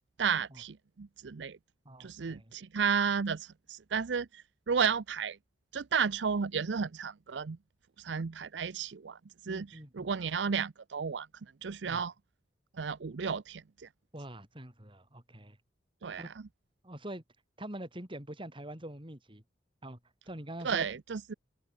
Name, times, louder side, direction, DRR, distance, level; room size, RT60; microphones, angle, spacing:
voice 1, 0.2-1.6 2.0-5.4 5.7-7.6 8.0-11.3 11.6-12.1 12.8-13.9 16.0-16.3 20.6-21.3, right 6 dB, 75° right, 0.6 m, -33 dB
voice 2, 1.8-2.5 9.5-10.1 11.8-12.0 14.1-15.6 16.2-16.3 16.8-17.2 17.6-19.4 19.8-20.0 20.3-20.8, right 1 dB, 30° right, 4.8 m, -44 dB
open air
head